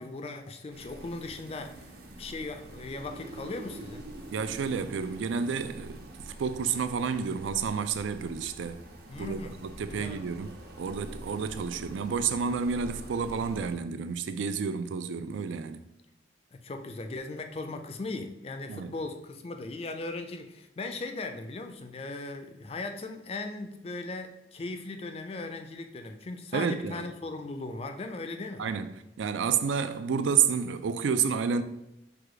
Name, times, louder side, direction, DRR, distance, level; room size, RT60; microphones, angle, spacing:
voice 1, 0.0-1.9 2.2-4.1 9.1-9.6 9.9-10.2 16.5-28.7, left 3 dB, 30° left, 0.4 m, -38 dB
sound 1, 0.7-13.7, right 1 dB, 55° right, 0.7 m, -45 dB
voice 2, 4.3-8.8 9.2-15.8 18.7-18.9 26.5-27.1 28.6-31.6, right 6 dB, 85° right, 0.4 m, -30 dB
4.8 x 2.3 x 4.8 m
head